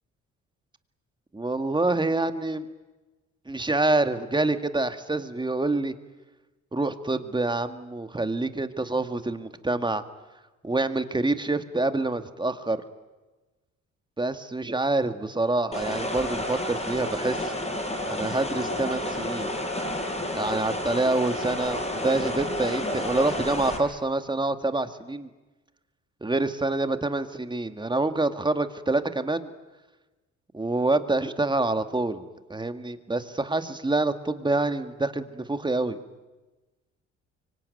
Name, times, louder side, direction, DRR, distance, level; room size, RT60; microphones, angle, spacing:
voice 1, 1.3-2.7 3.5-5.9 6.7-10.0 10.6-12.8 14.2-17.5 18.1-19.5 20.3-25.3 26.2-29.5 30.5-36.0, right 2 dB, 15° right, 9 dB, 2.0 m, -26 dB
sound 1, 15.7-23.8, left 1 dB, 20° left, 6.6 m, -30 dB
25.0 x 24.5 x 9.4 m, 1.2 s
cardioid pair, 90°, 30 cm